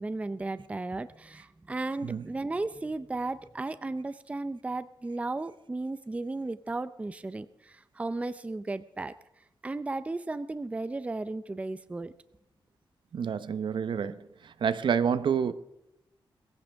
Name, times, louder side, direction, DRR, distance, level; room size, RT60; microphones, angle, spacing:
voice 1, 0.0-9.1 9.6-12.1, right 2 dB, 15° right, 0.5 m, -35 dB
voice 2, 13.1-14.2 14.4-15.5, right 7 dB, 65° right, 0.8 m, -28 dB
22.0 x 15.0 x 3.5 m
wide cardioid pair, 155°, 9 cm